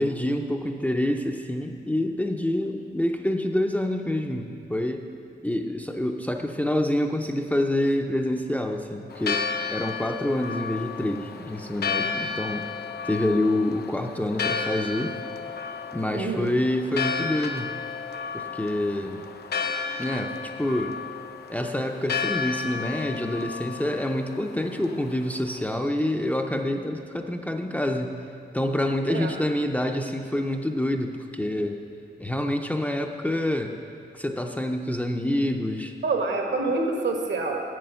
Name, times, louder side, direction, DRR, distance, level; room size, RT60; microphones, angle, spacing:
voice 1, 0.0-5.0 5.4-9.4 9.7-12.6 13.0-15.1 15.9-17.7 18.3-19.2 20.0-20.9 21.5-28.1 28.5-31.8 32.2-33.7 34.1-35.9, left 1 dB, 10° left, 3 dB, 0.4 m, -27 dB
Church bell, 9.1-25.8, left 5 dB, 60° left, 0.5 m, -33 dB
voice 2, 16.1-16.5 29.1-29.3 36.0-37.6, right 3 dB, 75° right, 2 dB, 1.3 m, -26 dB
7.9 x 7.6 x 6.8 m, 2.5 s
wide cardioid pair, 160°, 19 cm